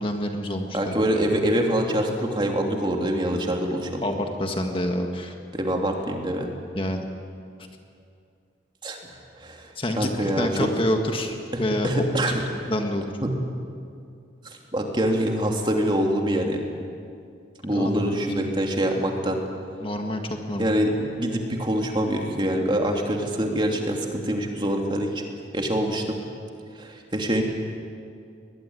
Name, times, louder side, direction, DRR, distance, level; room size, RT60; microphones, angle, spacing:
voice 1, 0.0-0.9 4.0-5.3 6.8-7.1 9.8-12.0 12.4-13.1 17.7-18.5 19.8-20.7, left 1 dB, 30° left, 4 dB, 1.7 m, -28 dB
voice 2, 0.7-4.0 5.5-6.5 8.8-9.0 9.4-9.7 10.0-10.7 11.5-12.4 13.2-13.3 14.4-16.6 17.6-19.4 20.6-25.2 25.5-26.2 26.7-27.4, right 1 dB, 25° right, 1 dB, 2.8 m, -25 dB
23.0 x 20.0 x 9.5 m, 2.4 s
head